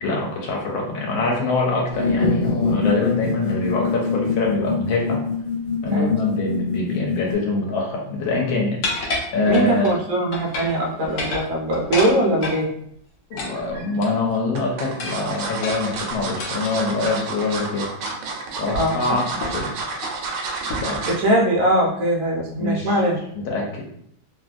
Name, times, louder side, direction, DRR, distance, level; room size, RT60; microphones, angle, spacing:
voice 1, 0.0-5.2 5.8-8.8 9.3-9.9 13.3-17.9 18.6-19.7 20.8-21.0 22.6-23.0 23.3-23.7, left 3 dB, 85° left, -2 dB, 1.4 m, -24 dB
sound 1, 1.9-7.3, left 4 dB, 45° left, 1.2 m, -24 dB
sound 2, 8.8-10.0 10.3-10.8 11.1-12.6 13.4-14.4 15.0-17.2 18.0-18.3 18.7-18.8 19.4-19.7 20.0-20.2 20.7-21.0, left 2 dB, 65° left, 1.0 m, -30 dB
voice 2, 9.5-12.7 18.7-19.2 21.2-23.2, right 1 dB, 60° right, -2 dB, 0.9 m, -21 dB
sound 3, 13.3-13.8 14.5-21.3 21.7-21.9 22.2-22.3, right 4 dB, 75° right, 1.2 m, -30 dB
3.0 x 2.6 x 2.4 m, 0.71 s
omnidirectional pair, 2.1 m